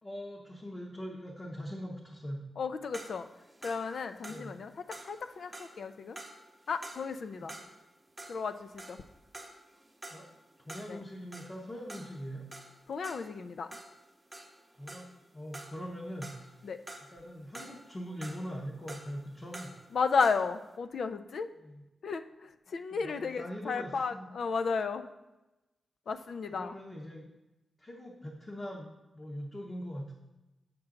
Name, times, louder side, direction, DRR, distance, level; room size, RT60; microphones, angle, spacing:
voice 1, 0.0-2.4 4.2-4.5 7.3-7.6 10.1-10.3 10.6-12.4 14.8-16.4 17.1-19.7 21.6-21.8 22.9-24.3 26.5-27.3 27.8-30.1, equal, 25° left, -3 dB, 0.8 m, -42 dB
voice 2, 2.6-3.3 3.6-6.2 6.7-7.5 8.3-9.0 10.9-11.0 12.9-13.8 16.6-16.8 19.9-21.5 22.0-25.1 26.1-26.8, left 5 dB, 60° left, 10 dB, 0.4 m, -33 dB
sound 1, 2.9-7.9 8.2-15.3 15.5-17.2 17.5-20.5, right 1 dB, 10° right, 0.8 m, -49 dB
7.5 x 5.9 x 3.8 m, 1.0 s
wide cardioid pair, 150°, 0 cm